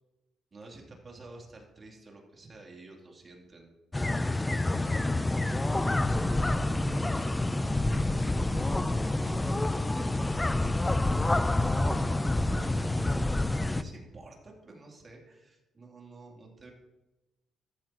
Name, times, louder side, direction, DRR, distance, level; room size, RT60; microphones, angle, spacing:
voice 1, 0.5-3.7 4.7-5.1 6.0-10.9 11.4-13.1 13.4-16.7, right 2 dB, 35° right, 0 dB, 3.2 m, -50 dB
sound 1, 3.9-13.8, left 2 dB, 15° left, 0.5 m, -28 dB
14.0 x 13.5 x 3.0 m, 1.0 s
cardioid pair, 90°, 0 cm